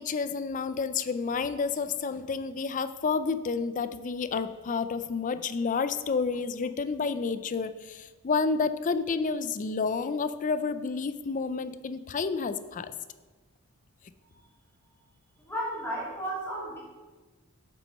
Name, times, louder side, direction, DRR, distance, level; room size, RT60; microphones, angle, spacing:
voice 1, 0.0-12.9, left 5 dB, 35° left, 12 dB, 0.4 m, -30 dB
voice 2, 15.4-16.8, right 1 dB, 10° left, -6 dB, 2.5 m, -34 dB
7.6 x 6.1 x 5.3 m, 1.3 s
head